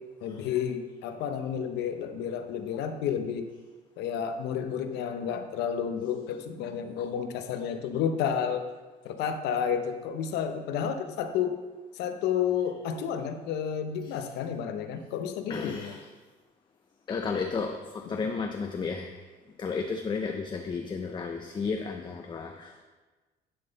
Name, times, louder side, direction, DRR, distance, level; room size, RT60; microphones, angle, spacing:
voice 1, 0.2-3.5 4.0-8.7 9.0-11.6 11.9-15.9 18.1-18.2, left 8 dB, 85° left, 7 dB, 0.7 m, -31 dB
voice 2, 15.5-16.1 17.1-19.2 19.6-22.8, left 5 dB, 25° left, 4 dB, 0.5 m, -33 dB
11.0 x 3.8 x 3.9 m, 1.3 s
cardioid pair, 110°, 17 cm